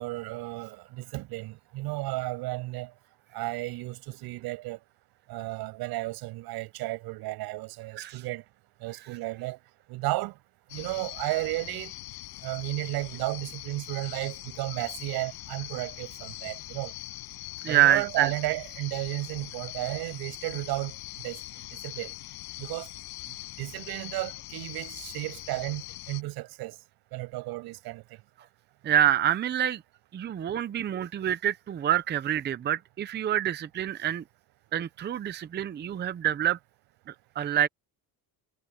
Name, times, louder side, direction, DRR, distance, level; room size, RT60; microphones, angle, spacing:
voice 1, 0.0-2.9 3.3-4.8 5.3-8.4 8.8-9.6 9.9-10.3 10.7-11.9 12.4-16.9 17.7-20.9 21.2-21.4 21.7-22.1 22.6-22.9 23.6-25.8 26.1-26.7 27.1-28.0, right 19 dB, 80° right, 6.6 m, -33 dB
sound 1, 10.7-26.2, left 19 dB, 80° left, 6.2 m, -42 dB
voice 2, 17.6-18.3 28.8-29.8 30.1-34.2 34.7-36.6 37.1-37.7, right 11 dB, 30° right, 0.7 m, -26 dB
cardioid pair, 140°, 37 cm